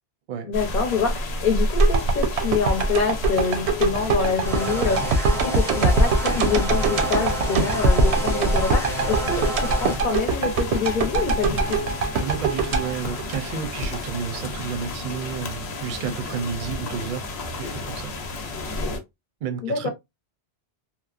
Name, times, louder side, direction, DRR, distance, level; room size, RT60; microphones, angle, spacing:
voice 1, 0.4-5.2 5.4-11.8 19.6-19.9, left 5 dB, 55° left, 0.8 m, -26 dB
sound 1, 0.5-19.0, left 1 dB, 85° left, 0.9 m, -30 dB
sound 2, 1.8-14.0 14.4-14.5, right 3 dB, 90° right, 0.9 m, -23 dB
sound 3, 4.5-10.0, right 1 dB, 5° left, 0.5 m, -30 dB
voice 2, 12.2-17.3 17.6-18.2 19.4-19.9, right 7 dB, 60° right, 0.6 m, -31 dB
3.0 x 2.0 x 2.3 m
omnidirectional pair, 1.1 m